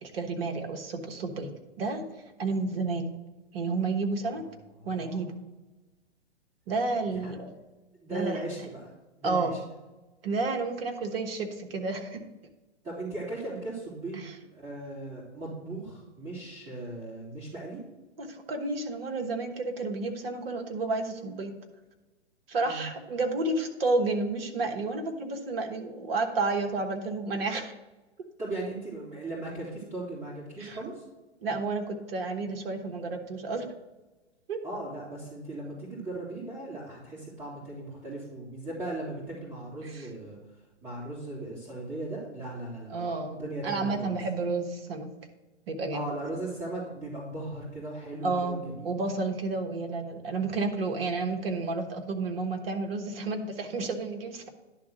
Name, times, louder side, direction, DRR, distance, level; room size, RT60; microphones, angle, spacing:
voice 1, 0.0-1.5 1.8-2.1 2.4-3.1 3.5-4.5 4.8-5.3 6.7-7.5 8.1-8.4 9.2-9.5 10.2-12.2 14.2-14.3 18.2-21.5 22.5-27.7 30.6-30.8 31.4-33.7 34.5-34.6 39.8-40.1 42.9-45.1 45.7-46.1 48.2-54.5, right 3 dB, 55° right, 4 dB, 1.3 m, -31 dB
voice 2, 4.8-5.2 7.1-7.3 8.0-8.9 9.2-9.6 12.8-14.3 14.5-17.8 22.6-22.8 28.4-31.0 34.6-40.4 40.8-44.2 45.9-48.9, right 2 dB, 20° right, -11 dB, 3.0 m, -38 dB
10.5 x 3.6 x 6.1 m, 1.1 s
figure-of-eight pair, 115°, 35 cm